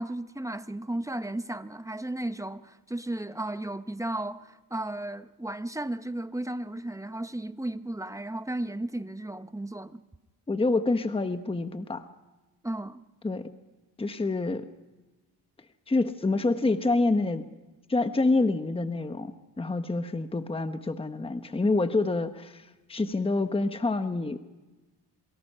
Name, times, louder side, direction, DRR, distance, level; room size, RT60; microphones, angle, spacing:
voice 1, 0.0-10.0 12.6-13.0, right 1 dB, 10° right, 0.8 m, -34 dB
voice 2, 10.5-12.0 13.2-13.4 14.0-14.7 15.9-17.4 17.9-19.3 19.6-22.6 22.9-24.4, left 3 dB, 15° left, 1.1 m, -27 dB
27.5 x 23.0 x 5.6 m
cardioid pair, 100°, 39 cm